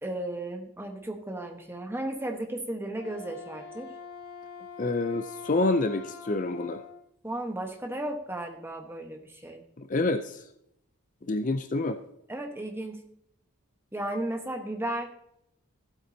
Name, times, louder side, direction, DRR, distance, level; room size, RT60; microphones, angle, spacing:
voice 1, 0.0-3.9 7.2-9.6 12.3-13.1 13.9-15.1, right 1 dB, 10° right, 3 dB, 1.2 m, -34 dB
Wind instrument woodwind instrument, 2.9-7.0, left 5 dB, 85° left, 0.9 m, -45 dB
voice 2, 4.8-6.8 9.8-10.5 11.2-12.0, left 2 dB, 35° left, 9 dB, 0.5 m, -27 dB
15.0 x 8.3 x 2.8 m, 0.78 s
head